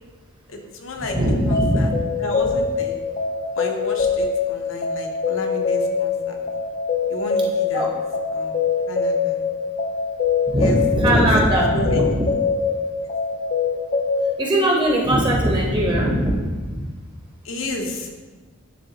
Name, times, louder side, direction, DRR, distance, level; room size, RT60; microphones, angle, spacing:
voice 1, 0.5-1.2 1.5-1.9 2.2-3.0 3.5-6.4 7.1-7.9 8.3-8.6 8.9-9.4 10.6-10.8 11.1-11.3 11.7-12.0 13.0-13.1 17.4-18.2, left 1 dB, 75° left, 2 dB, 0.8 m, -32 dB
voice 2, 1.0-1.9 7.7-7.9 10.5-12.3 14.4-16.5 16.8-16.9, right 1 dB, 25° right, -1 dB, 0.9 m, -20 dB
sound 1, 1.1-14.3, left 5 dB, 40° left, 0.5 m, -24 dB
10.0 x 3.6 x 2.9 m, 1.3 s
head